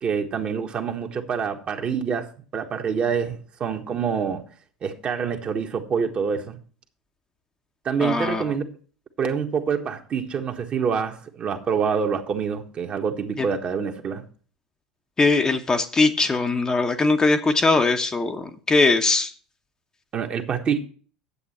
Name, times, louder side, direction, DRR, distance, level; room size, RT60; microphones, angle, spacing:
voice 1, 0.0-4.4 4.8-6.6 7.8-8.7 9.2-14.2 20.1-20.8, right 6 dB, 35° right, 1.4 m, -26 dB
voice 2, 8.0-8.5 13.4-13.5 15.2-19.3, left 3 dB, 20° left, 1.0 m, -21 dB
10.0 x 8.0 x 4.3 m
figure-of-eight pair, 75°, 3 cm